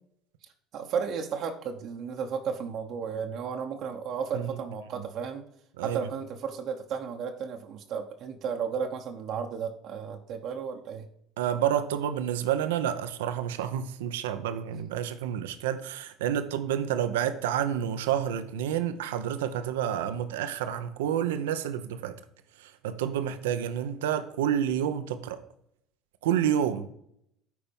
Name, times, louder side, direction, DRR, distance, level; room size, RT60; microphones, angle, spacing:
voice 1, 0.7-5.4 5.8-11.1 15.2-15.3, right 6 dB, 60° right, 0.9 m, -34 dB
voice 2, 11.4-22.1 22.6-25.4 26.2-26.9, right 9 dB, 90° right, 0.7 m, -29 dB
9.2 x 4.3 x 5.3 m
hypercardioid pair, 75°, 0 cm